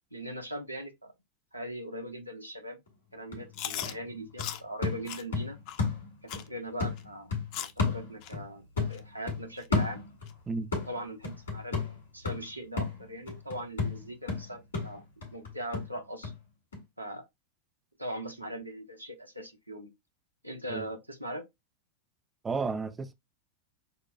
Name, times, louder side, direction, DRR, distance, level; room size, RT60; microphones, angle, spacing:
voice 1, 0.1-1.1 1.5-2.8 3.1-5.6 6.2-10.0 10.7-11.9 12.1-15.0 15.3-16.3 17.0-17.2 18.0-19.9 20.4-21.4, right 1 dB, 90° right, 0.7 m, -40 dB
sound 1, 2.9-3.0 3.3-6.5 6.8-8.5 8.8-10.4 10.7-16.4 16.7-16.8, left 4 dB, 70° left, 2.0 m, -33 dB
Chewing mastication, 3.5-3.9 4.4-4.6 5.1-5.2 5.7-5.8 6.3-6.5 7.0-7.1 7.5-7.8 8.2-8.3 8.9-9.0 9.6-9.7 10.3-10.4, left 11 dB, 45° left, 0.4 m, -37 dB
voice 2, 22.4-23.1, right 4 dB, 15° right, 0.3 m, -32 dB
6.6 x 2.3 x 2.3 m
figure-of-eight pair, 90°, 0 cm